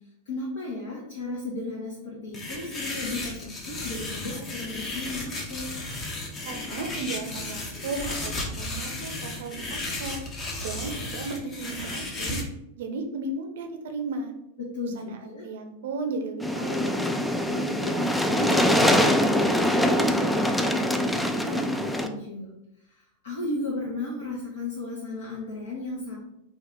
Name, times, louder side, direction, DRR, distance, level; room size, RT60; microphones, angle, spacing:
voice 1, 0.3-5.7 14.6-15.5 22.0-22.5 22.9-26.2, left 2 dB, 60° left, -3 dB, 0.8 m, -34 dB
sound 1, 2.3-12.4, left 2 dB, 25° left, 0.8 m, -34 dB
voice 2, 6.4-10.2 10.6-12.4 12.8-14.3 14.8-17.0 17.4-20.9 21.5-21.7, right 3 dB, 60° right, 5 dB, 0.6 m, -35 dB
sound 2, 16.4-22.1, left 1 dB, 5° left, 0.3 m, -23 dB
4.0 x 2.4 x 3.8 m, 0.84 s
figure-of-eight pair, 90°, 0 cm